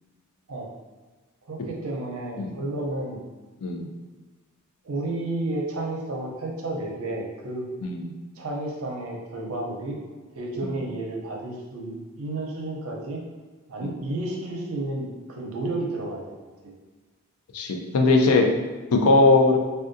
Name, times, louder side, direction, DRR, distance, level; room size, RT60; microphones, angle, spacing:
voice 1, 1.5-3.2 4.8-7.7 8.4-10.0 10.3-13.2 13.7-16.3 16.6-16.7, right 2 dB, 65° right, -2 dB, 0.6 m, -31 dB
voice 2, 17.5-18.4 18.9-19.6, left 3 dB, 75° left, 2 dB, 0.4 m, -19 dB
3.6 x 2.2 x 2.6 m, 1.3 s
head